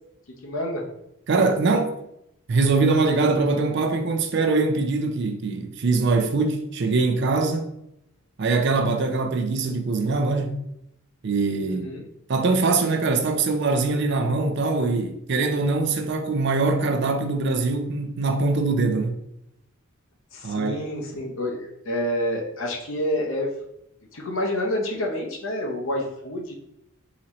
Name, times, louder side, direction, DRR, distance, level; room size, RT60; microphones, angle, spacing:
voice 1, 0.4-0.9 11.7-12.1 20.3-23.5 24.1-26.6, left 1 dB, 65° left, 0.7 m, -28 dB
voice 2, 1.3-2.0 2.5-7.7 8.4-10.6 11.2-11.9 12.3-19.2 20.4-20.7, right 3 dB, 55° right, 0.4 m, -22 dB
3.9 x 2.8 x 3.0 m
head